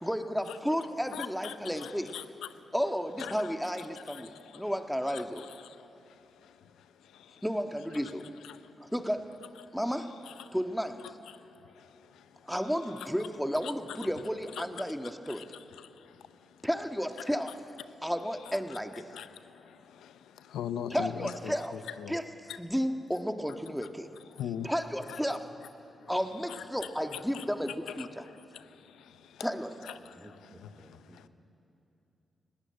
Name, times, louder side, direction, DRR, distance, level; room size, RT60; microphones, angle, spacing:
voice 1, 0.0-2.1 2.7-5.5 7.4-8.3 8.8-9.3 9.7-10.2 10.5-11.1 12.4-15.5 16.6-17.5 18.0-19.1 20.9-21.7 22.1-24.1 24.6-25.5 26.1-28.2 29.4-29.9, equal, ahead, 6 dB, 1.6 m, -32 dB
voice 2, 1.1-2.2 3.2-3.3 4.1-4.2 5.1-5.2 13.6-13.7 14.6-14.7 19.1-19.2 20.5-22.2 24.4-24.7 25.1-25.2 26.5-26.6 27.1-28.1 29.9-30.0, left 9 dB, 85° left, 13 dB, 0.7 m, -39 dB
voice 3, 29.9-31.3, right 1 dB, 20° right, 3 dB, 2.8 m, -56 dB
19.5 x 17.0 x 8.9 m, 2.8 s
supercardioid pair, 40°, 0 cm